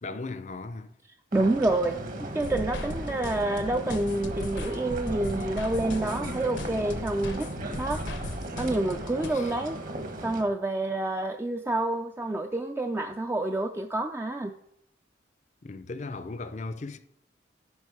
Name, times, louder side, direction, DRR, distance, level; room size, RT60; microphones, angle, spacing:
voice 1, 0.0-0.9 9.3-9.5 15.6-17.0, left 3 dB, 40° left, 0.5 m, -37 dB
voice 2, 1.3-7.5 7.8-8.0 8.6-9.8 10.2-14.5, right 2 dB, 15° right, 0.3 m, -28 dB
sound 1, 1.3-10.4, right 1 dB, 45° right, 1.1 m, -37 dB
sound 2, 2.4-9.3, left 1 dB, 80° left, 0.9 m, -37 dB
9.5 x 5.4 x 4.8 m
head